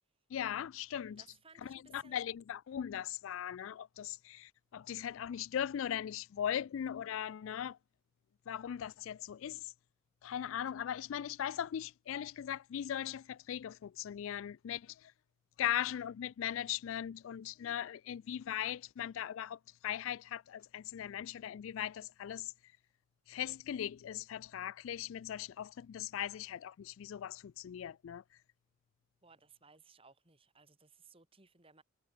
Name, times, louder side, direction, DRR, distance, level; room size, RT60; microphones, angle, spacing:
voice 1, 0.3-1.2 1.6-7.8 8.5-9.7 10.2-15.1 15.6-22.5 23.3-28.2, left 10 dB, 70° left, 0.3 m, -39 dB
voice 2, 1.1-2.2 29.2-31.8, right 4 dB, 25° right, 2.6 m, -62 dB
head